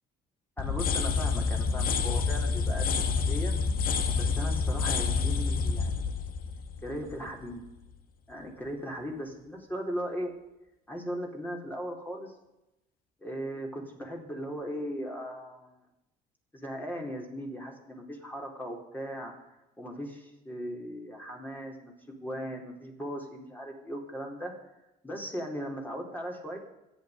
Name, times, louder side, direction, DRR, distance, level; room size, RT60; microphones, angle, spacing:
sound 1, 0.6-7.4, left 5 dB, 60° left, 1.7 m, -28 dB
voice 1, 0.6-3.6 4.1-6.2 6.8-7.6 8.3-10.3 10.9-12.3 13.2-15.8 16.5-19.3 19.8-24.5 25.0-26.6, equal, 10° left, 1 dB, 4.3 m, -38 dB
26.5 x 9.9 x 5.4 m, 0.93 s
cardioid pair, 110°, 17 cm